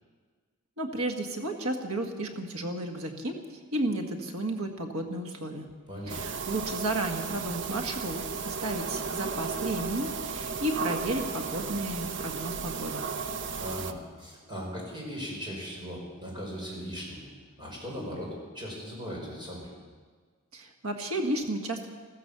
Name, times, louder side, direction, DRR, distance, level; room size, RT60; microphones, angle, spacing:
voice 1, 0.8-5.7 6.1-13.0 20.5-21.9, right 1 dB, 85° right, 4 dB, 1.9 m, -33 dB
voice 2, 5.9-6.2 13.6-17.3 17.6-19.7, equal, 20° right, -3 dB, 5.3 m, -38 dB
sound 1, 6.1-13.9, right 5 dB, 60° right, 0.8 m, -34 dB
15.0 x 14.0 x 6.9 m, 1.5 s
head